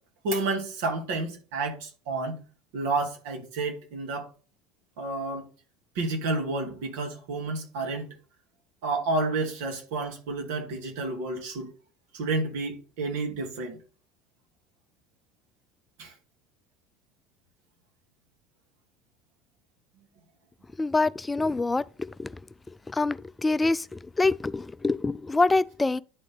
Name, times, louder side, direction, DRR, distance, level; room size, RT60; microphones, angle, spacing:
voice 1, 0.2-2.4 2.7-4.3 5.0-5.5 6.0-8.1 8.8-11.7 12.1-13.8 16.0-16.1, right 3 dB, 65° right, 1.9 m, -30 dB
voice 2, 20.8-21.8 23.0-23.2 23.4-23.8 24.2-26.0, left 3 dB, 15° left, 0.4 m, -24 dB
10.0 x 4.2 x 3.4 m
hypercardioid pair, 70°, 0 cm